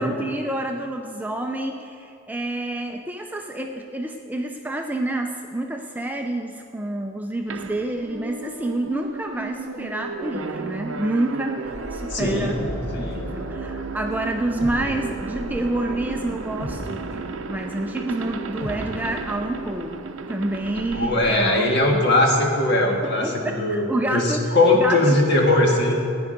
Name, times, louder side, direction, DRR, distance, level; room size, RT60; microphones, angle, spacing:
voice 1, 0.0-12.5 13.0-22.1 23.0-25.2, right 1 dB, 10° right, 3 dB, 0.4 m, -28 dB
sound 1, 7.5-22.2, right 4 dB, 70° right, 0.6 m, -34 dB
sound 2, 11.6-19.7, equal, 75° left, 1.8 m, -36 dB
voice 2, 12.1-12.5 12.9-13.3 20.9-23.9 24.1-25.9, left 2 dB, 50° left, 0 dB, 1.8 m, -20 dB
15.0 x 9.7 x 5.2 m, 2.6 s
head